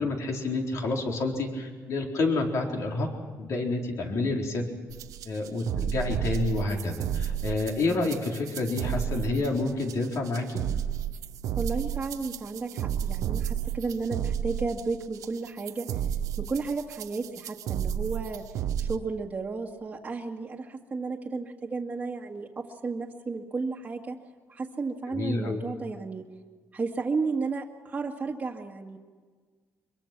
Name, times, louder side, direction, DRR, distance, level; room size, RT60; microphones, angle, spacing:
voice 1, 0.0-3.1 3.4-4.6 5.3-10.6 25.1-25.6, left 2 dB, 60° left, 1 dB, 4.3 m, -29 dB
sound 1, 4.9-19.0, right 9 dB, 80° right, 1.0 m, -32 dB
voice 2, 11.6-15.9 16.4-18.4 18.8-24.2 24.5-26.2 26.7-29.0, right 4 dB, 25° right, -2 dB, 1.9 m, -33 dB
24.5 x 23.0 x 6.1 m, 1.5 s
cardioid pair, 135°, 6 cm